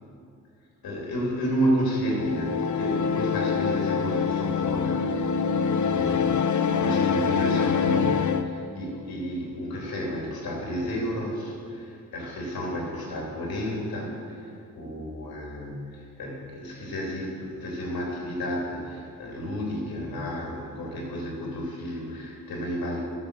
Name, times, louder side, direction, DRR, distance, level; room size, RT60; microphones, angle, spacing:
voice 1, 0.8-5.0 5.9-6.4 6.7-14.5 14.7-23.0, equal, 80° left, -3 dB, 3.0 m, -31 dB
sound 1, 2.1-8.5, left 6 dB, 55° left, 0.8 m, -25 dB
13.5 x 5.9 x 6.6 m, 2.4 s
cardioid pair, 50°, 36 cm